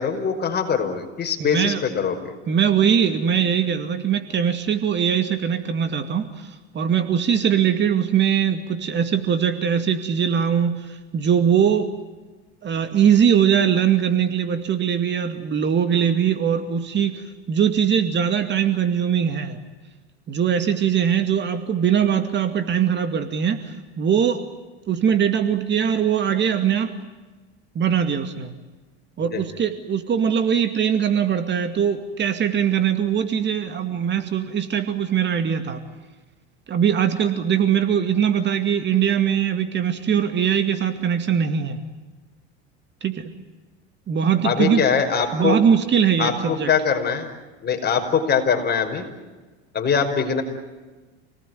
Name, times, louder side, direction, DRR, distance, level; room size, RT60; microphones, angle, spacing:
voice 1, 0.0-2.3 29.2-29.4 44.4-45.6 46.2-47.3 47.6-49.0 49.7-50.4, left 6 dB, 30° left, 4 dB, 5.5 m, -22 dB
voice 2, 1.4-1.8 2.5-11.9 12.6-19.6 20.3-24.4 24.9-26.9 27.7-28.5 29.2-35.8 36.7-41.8 43.0-43.3 44.1-44.9 45.3-46.7, right 8 dB, 35° right, 8 dB, 2.3 m, -21 dB
29.0 x 19.0 x 9.5 m, 1.3 s
supercardioid pair, 100°, 32 cm